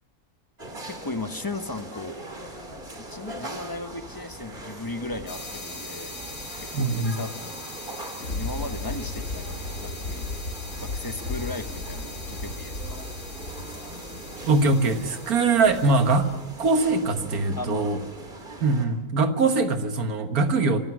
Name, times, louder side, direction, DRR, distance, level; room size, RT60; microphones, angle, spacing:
sound 1, 0.6-18.9, right 2 dB, 35° right, 2.9 m, -41 dB
voice 1, 0.8-2.2 3.0-6.2 6.6-8.0 8.4-10.3 10.8-13.1 17.6-17.9 19.4-19.5, left 2 dB, 20° left, 9 dB, 0.7 m, -36 dB
sound 2, 5.3-16.5, left 2 dB, 85° left, 3.3 m, -42 dB
voice 2, 6.7-7.1 14.5-16.3 16.6-18.0 18.6-20.8, right 3 dB, 75° right, 8 dB, 1.9 m, -22 dB
Thunder, 7.8-15.3 15.8-15.9, left 3 dB, 60° left, 2.2 m, -35 dB
27.5 x 15.5 x 6.1 m, 0.96 s
omnidirectional pair, 1.6 m